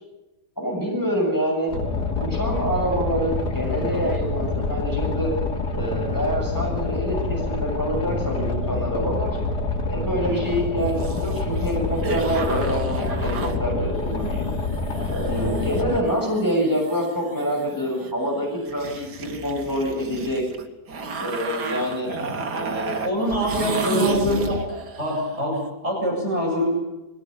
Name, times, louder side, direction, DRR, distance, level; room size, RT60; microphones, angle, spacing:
voice 1, 0.6-1.7 2.2-5.3 5.7-9.3 9.9-14.5 15.1-20.4 21.2-22.1 22.5-23.0 23.3-23.5 23.8-24.5, equal, 10° left, -2 dB, 6.7 m, -26 dB
Boat Water vehicle, 1.7-16.0, left 3 dB, 80° left, 3.4 m, -26 dB
sound 1, 10.5-25.4, right 3 dB, 80° right, 2.5 m, -34 dB
voice 2, 15.2-15.6 22.1-22.4 23.0-24.7 25.0-26.7, equal, 40° right, -2 dB, 8.4 m, -25 dB
21.5 x 16.5 x 9.9 m, 0.98 s
omnidirectional pair, 1.7 m